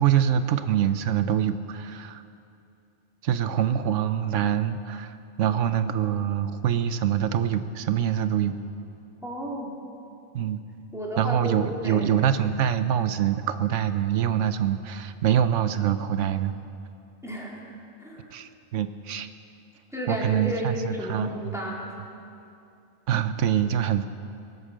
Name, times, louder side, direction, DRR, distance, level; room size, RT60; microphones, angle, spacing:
voice 1, 0.0-2.2 3.2-8.6 10.3-10.6 11.2-16.6 18.3-19.3 20.1-21.5 23.1-24.0, right 9 dB, 75° right, 11 dB, 1.0 m, -25 dB
voice 2, 9.2-9.7 10.9-11.6 11.8-12.1 17.2-17.6 18.0-18.3 19.9-22.0, equal, ahead, -4 dB, 2.8 m, -32 dB
23.0 x 8.1 x 6.6 m, 2.6 s
omnidirectional pair, 1.3 m